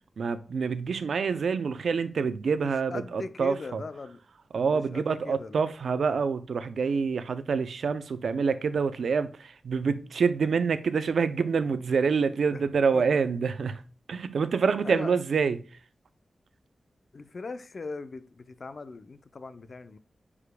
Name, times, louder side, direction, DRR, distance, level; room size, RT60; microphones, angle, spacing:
voice 1, 0.2-3.8 4.5-13.8 14.1-15.6, right 5 dB, 80° right, 0.5 m, -27 dB
voice 2, 2.6-4.2 4.7-5.6 12.5-12.7 12.9-13.0 14.8-15.1 17.1-20.0, left 3 dB, 50° left, 0.5 m, -39 dB
9.8 x 4.9 x 2.2 m
wide cardioid pair, 105°, 0 cm